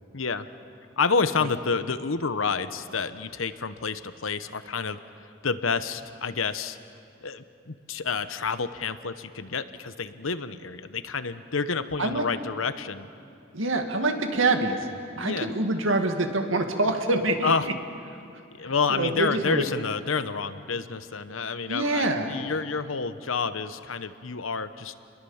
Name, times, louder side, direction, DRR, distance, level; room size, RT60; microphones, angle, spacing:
voice 1, 0.1-0.5 1.0-5.0 5.4-6.8 7.2-13.1 15.2-15.5 17.4-17.7 18.6-24.9, left 5 dB, 85° left, 12 dB, 1.0 m, -29 dB
voice 2, 13.5-14.9 15.2-17.5 18.6-19.7 21.7-22.4, right 2 dB, 75° right, 5 dB, 2.2 m, -25 dB
29.5 x 21.5 x 7.2 m, 2.5 s
head